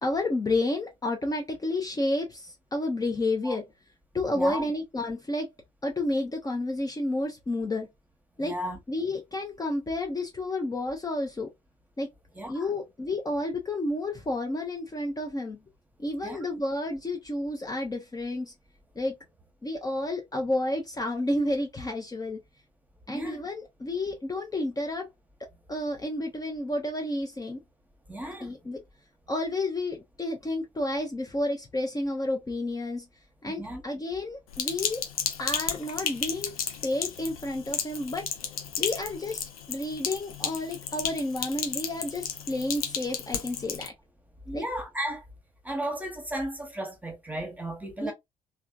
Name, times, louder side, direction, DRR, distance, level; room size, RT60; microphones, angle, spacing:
voice 1, 0.0-3.7 4.1-5.5 5.8-7.9 8.4-8.5 8.9-11.5 12.0-12.1 12.5-15.6 16.0-18.5 19.0-19.1 19.6-22.4 23.1-25.1 25.7-27.6 28.4-28.8 29.3-33.1 33.4-35.0 35.4-38.3 38.8-39.4 39.7-43.9 44.5-44.6 48.0-48.1, left 2 dB, 20° left, 0.8 m, -30 dB
voice 2, 8.4-8.8 12.4-12.6 16.2-16.4 23.1-23.4 28.1-28.5 33.5-33.8 44.5-45.2 45.6-48.1, right 1 dB, 10° right, 1.2 m, -34 dB
Sink (filling or washing), 34.5-43.9, left 7 dB, 80° left, 0.5 m, -33 dB
3.4 x 2.3 x 2.5 m
figure-of-eight pair, 45°, 18 cm